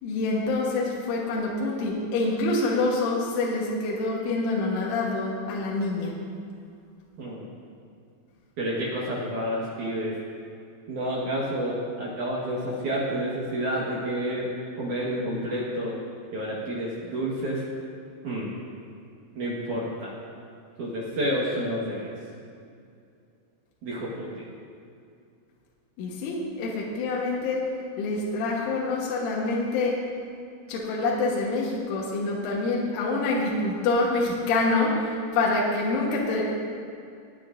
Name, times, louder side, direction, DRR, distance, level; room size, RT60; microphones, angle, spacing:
voice 1, 0.0-6.1 26.0-30.0 30.7-36.5, left 3 dB, 75° left, -3 dB, 3.7 m, -26 dB
voice 2, 8.6-10.1 10.9-14.5 14.8-15.9 16.3-17.6 18.2-18.5 19.4-20.1 20.8-22.1 23.8-24.5, equal, 75° right, -5 dB, 1.8 m, -29 dB
25.0 x 9.0 x 2.6 m, 2.4 s
omnidirectional pair, 5.9 m